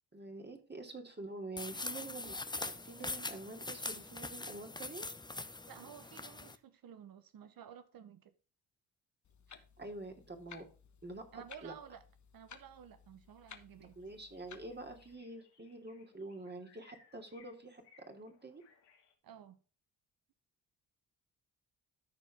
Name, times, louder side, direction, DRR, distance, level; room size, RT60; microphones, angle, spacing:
voice 1, 0.1-5.1 9.5-10.6 11.0-11.7 14.0-17.8 18.1-18.6, right 2 dB, 25° right, 2.8 m, -47 dB
sound 1, 1.6-6.6, left 2 dB, 10° left, 0.9 m, -42 dB
voice 2, 5.7-8.3 11.3-12.0 12.3-14.0 19.2-19.6, right 8 dB, 55° right, 1.0 m, -53 dB
Clock, 9.2-15.2, left 7 dB, 45° left, 1.4 m, -58 dB
sound 2, 13.3-13.4 13.7-19.1, left 5 dB, 80° left, 2.4 m, -67 dB
13.5 x 4.6 x 3.5 m
hypercardioid pair, 55°, 41 cm